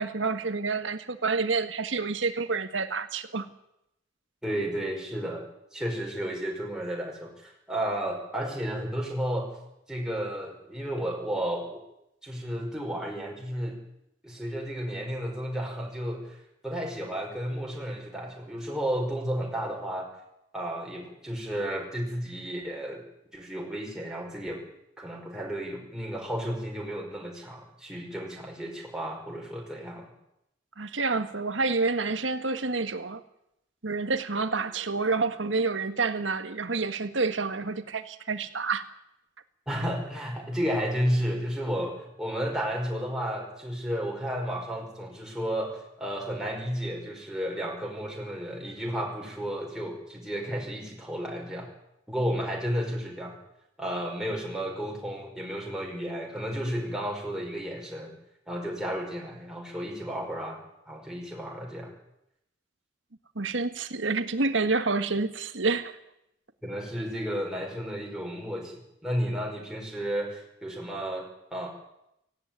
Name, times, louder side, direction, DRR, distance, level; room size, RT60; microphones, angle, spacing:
voice 1, 0.0-3.4 30.8-33.2 33.8-38.8 63.3-66.0, right 4 dB, 75° right, 9 dB, 1.6 m, -28 dB
voice 2, 4.4-5.4 5.7-9.5 9.9-11.8 12.2-13.8 14.2-16.4 16.6-20.1 20.5-23.0 23.3-24.6 25.0-30.1 39.7-51.7 52.1-53.4 53.8-58.1 58.5-60.6 60.9-61.9 66.6-68.7 69.0-71.7, equal, 5° right, -1 dB, 5.2 m, -32 dB
18.0 x 16.0 x 9.0 m, 0.82 s
head